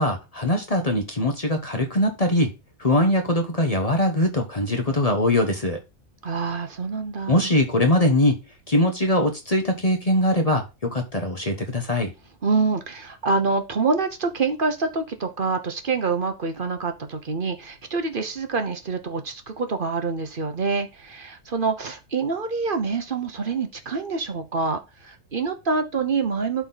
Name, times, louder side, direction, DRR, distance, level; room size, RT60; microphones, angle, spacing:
voice 1, 0.0-2.5 2.8-5.8 7.3-8.4 8.7-10.6 10.9-12.1, left 1 dB, 30° left, 1.1 m, -22 dB
voice 2, 6.2-7.5 12.4-26.7, right 4 dB, 40° right, 1.0 m, -26 dB
11.5 x 4.3 x 4.0 m
omnidirectional pair, 1.5 m